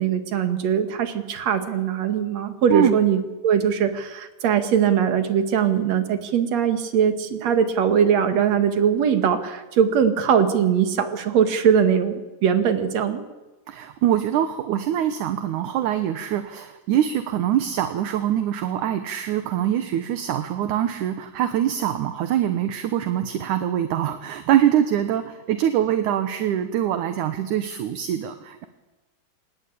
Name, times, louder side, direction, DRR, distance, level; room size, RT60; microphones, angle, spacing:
voice 1, 0.0-13.2, right 8 dB, 55° right, 8 dB, 2.9 m, -21 dB
voice 2, 13.7-28.7, right 11 dB, 70° right, 9 dB, 2.4 m, -24 dB
28.0 x 20.0 x 8.6 m, 1.1 s
omnidirectional pair, 4.0 m